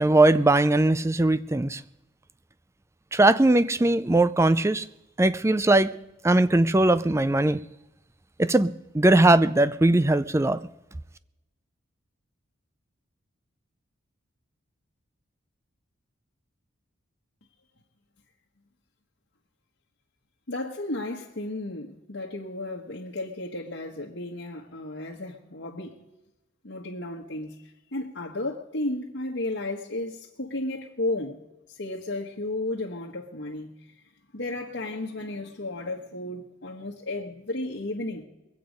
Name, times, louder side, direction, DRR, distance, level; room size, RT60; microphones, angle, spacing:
voice 1, 0.0-1.8 3.1-4.9 5.2-6.0 6.2-7.6 8.4-10.6, right 2 dB, 15° right, 0.4 m, -20 dB
voice 2, 20.5-25.9 26.6-31.4 31.7-34.0 34.3-38.2, left 2 dB, 60° left, 1.3 m, -33 dB
22.5 x 8.6 x 5.2 m
head